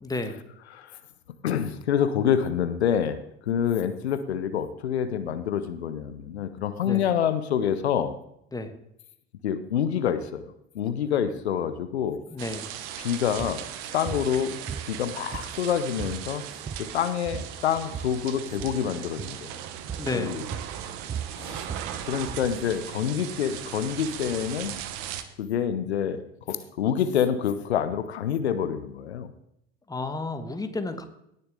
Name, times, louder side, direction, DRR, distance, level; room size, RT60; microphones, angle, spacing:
voice 1, 0.0-0.4 6.8-7.0 8.5-8.7 12.3-12.7 20.0-20.3 29.9-31.1, left 2 dB, 10° left, 8 dB, 1.4 m, -31 dB
voice 2, 1.4-8.1 9.4-12.2 13.0-13.6 13.9-14.6 14.9-16.4 16.8-19.6 20.1-20.4 21.4-21.6 22.0-24.7 25.4-29.3, left 8 dB, 80° left, 11 dB, 0.8 m, -27 dB
sound 1, 12.4-25.2, right 10 dB, 60° right, 1.2 m, -38 dB
sound 2, 13.4-13.6 14.1-14.3 14.7-15.7 16.0-16.2 16.5-17.0 17.3-18.2 18.5-18.8 19.2-19.4 19.9-20.1 20.5-22.5, right 7 dB, 20° right, 0.8 m, -36 dB
17.5 x 6.8 x 3.7 m, 0.77 s
hypercardioid pair, 70°, 32 cm